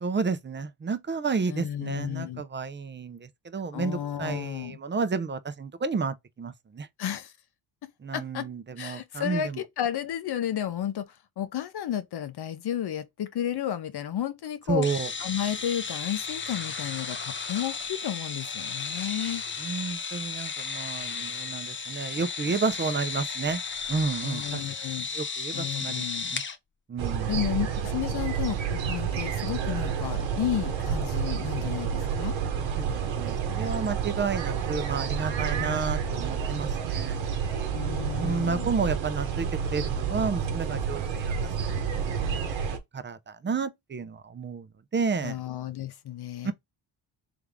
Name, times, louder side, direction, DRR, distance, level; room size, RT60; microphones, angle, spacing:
voice 1, 0.0-6.9 8.0-9.6 14.7-15.1 19.6-23.6 23.9-24.7 25.1-26.0 26.3-26.4 26.9-27.3 32.8-32.9 33.2-37.7 38.2-41.3 41.6-42.0 42.7-45.4 46.4-46.5, right 5 dB, 25° right, 0.6 m, -31 dB
voice 2, 1.5-2.4 3.7-4.8 7.0-7.3 8.1-8.5 8.8-11.1 11.4-14.9 15.2-19.4 24.2-25.1 25.5-26.4 27.3-32.3 35.6-35.9 37.7-38.7 45.2-46.5, left 10 dB, 60° left, 0.8 m, -32 dB
sound 1, 14.8-26.6, left 5 dB, 25° left, 0.6 m, -34 dB
sound 2, 27.0-42.8, right 7 dB, 80° right, 1.1 m, -30 dB
3.6 x 3.5 x 3.6 m
cardioid pair, 85°, 45 cm